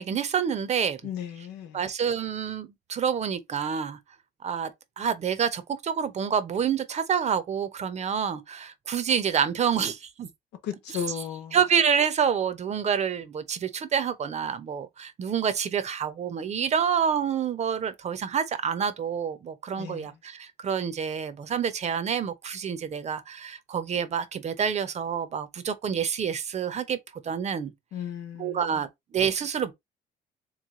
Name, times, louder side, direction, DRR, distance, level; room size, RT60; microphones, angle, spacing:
voice 1, 0.0-1.0 1.7-4.0 4.4-4.7 5.0-10.3 11.5-27.0 27.2-27.7 28.4-29.7, right 7 dB, 40° right, 0.8 m, -28 dB
voice 2, 1.0-1.8 10.6-11.6 19.8-20.1 27.9-28.8, left 8 dB, 80° left, 1.0 m, -35 dB
3.5 x 3.2 x 3.7 m
cardioid pair, 110°, 17 cm